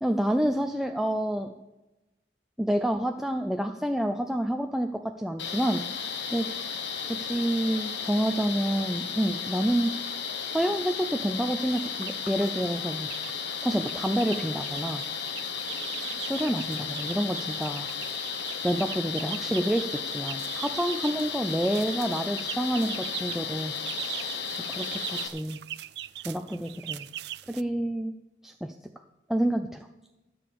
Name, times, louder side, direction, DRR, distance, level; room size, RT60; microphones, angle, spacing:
voice 1, 0.0-1.5 2.6-5.8 6.3-6.5 7.0-9.9 10.5-15.0 16.1-17.9 18.6-24.3 24.7-25.6 26.2-27.1 27.5-28.1 28.4-28.7 29.3-29.9, equal, ahead, 5 dB, 0.4 m, -28 dB
sound 1, 5.4-25.3, left 6 dB, 80° left, 1.0 m, -34 dB
sound 2, 11.7-12.2 12.7-13.3 13.6-27.6, right 14 dB, 70° right, 0.4 m, -40 dB
13.0 x 6.9 x 7.0 m, 1.0 s
head